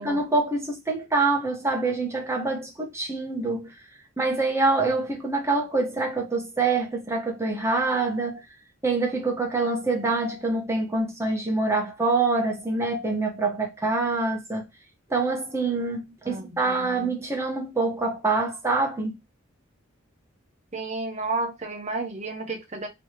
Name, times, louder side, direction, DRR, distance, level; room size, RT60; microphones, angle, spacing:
voice 1, 0.0-3.8 4.2-8.4 8.8-14.6 15.1-19.1, right 3 dB, 15° right, 1.0 m, -25 dB
voice 2, 16.2-17.1 20.7-22.9, right 3 dB, 35° right, 0.9 m, -32 dB
3.3 x 3.1 x 2.8 m
head